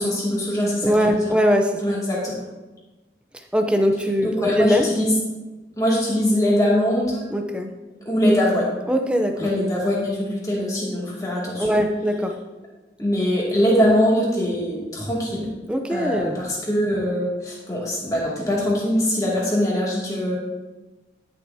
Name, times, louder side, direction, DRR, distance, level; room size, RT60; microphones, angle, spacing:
voice 1, 0.0-1.3 1.8-2.3 4.2-5.1 5.8-7.2 8.0-8.7 9.4-11.8 13.0-15.5 15.9-20.3, equal, 20° left, -6 dB, 2.4 m, -22 dB
voice 2, 0.8-1.8 3.5-4.9 7.3-7.7 8.9-9.5 11.6-12.3 15.7-16.4, equal, 5° right, 4 dB, 0.6 m, -21 dB
11.5 x 6.8 x 2.8 m, 1.1 s
head